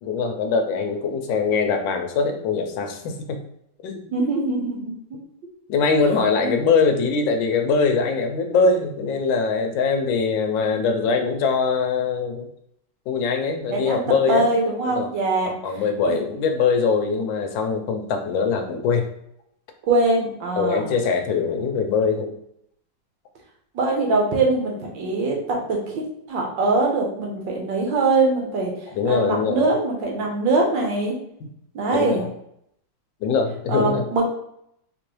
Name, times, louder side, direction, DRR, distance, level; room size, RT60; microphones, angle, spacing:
voice 1, 0.0-3.4 3.8-4.1 5.7-12.5 13.1-14.5 14.8-15.1 15.6-19.1 20.6-22.3 28.9-29.6 31.9-32.3 33.2-34.0, left 5 dB, 85° left, 5 dB, 1.3 m, -22 dB
voice 2, 4.1-4.9 6.4-6.6 13.7-15.5 16.1-16.2 19.9-20.9 23.7-26.0 26.3-28.7 29.0-31.2 31.7-32.2 33.7-34.2, right 3 dB, 75° right, 0 dB, 1.6 m, -22 dB
3.8 x 3.0 x 3.0 m, 0.74 s
omnidirectional pair, 2.0 m